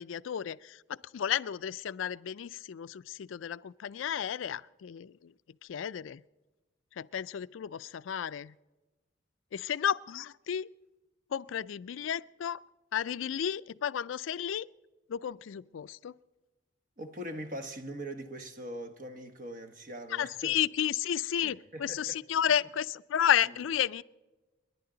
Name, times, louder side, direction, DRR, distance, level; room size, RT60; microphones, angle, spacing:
voice 1, 0.0-5.3 5.6-6.2 7.0-8.5 9.5-10.7 11.3-12.6 12.9-14.6 15.1-16.1 20.1-24.0, left 9 dB, 85° left, 0.4 m, -32 dB
voice 2, 17.0-20.6 21.4-22.2, right 1 dB, 45° right, 1.1 m, -41 dB
29.0 x 11.0 x 3.9 m
head